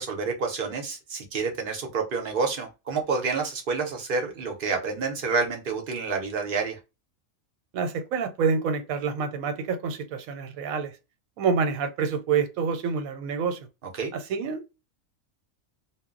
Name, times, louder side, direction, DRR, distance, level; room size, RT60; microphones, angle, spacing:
voice 1, 0.0-6.8 13.9-14.1, right 4 dB, 50° right, 0.8 m, -28 dB
voice 2, 7.7-10.9 11.4-13.6 14.1-14.7, right 5 dB, 85° right, 1.1 m, -27 dB
2.2 x 2.1 x 3.7 m
omnidirectional pair, 1.4 m